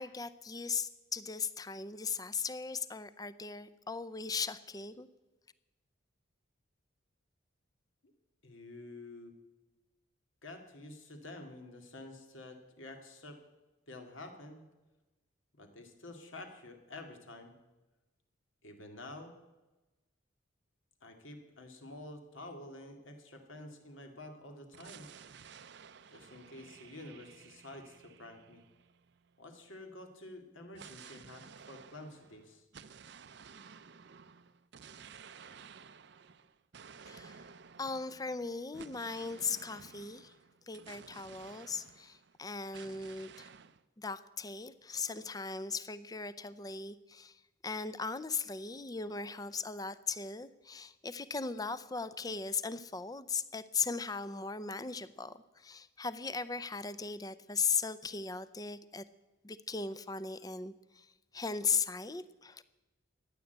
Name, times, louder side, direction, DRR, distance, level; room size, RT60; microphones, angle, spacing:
voice 1, 0.0-5.1 37.1-37.4 37.8-40.3 40.7-43.5 44.0-47.4 47.6-59.0 59.4-61.1 61.3-62.6, left 5 dB, 20° left, 15 dB, 0.5 m, -38 dB
voice 2, 8.4-9.3 10.4-13.4 13.9-14.6 15.5-17.5 18.6-19.3 21.0-25.1 26.1-28.6 29.4-32.7, left 2 dB, 75° left, 4 dB, 2.4 m, -49 dB
sound 1, 24.7-29.4 30.7-42.4 42.7-43.8, right 6 dB, 60° right, 0.6 m, -54 dB
15.0 x 10.0 x 8.1 m, 1.1 s
head